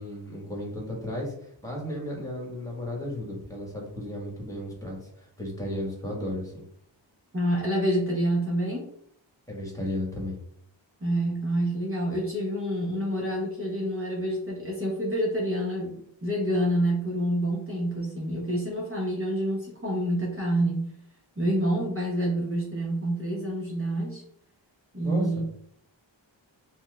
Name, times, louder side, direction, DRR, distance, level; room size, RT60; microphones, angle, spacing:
voice 1, 0.0-1.3 1.6-6.6 9.5-10.4 25.0-25.2, left 1 dB, 5° left, -3 dB, 1.3 m, -34 dB
voice 2, 7.3-8.9 11.0-20.9 21.4-24.2 24.9-25.4, right 1 dB, 30° right, -4 dB, 0.8 m, -27 dB
4.2 x 2.2 x 2.3 m, 0.67 s
wide cardioid pair, 45°, 46 cm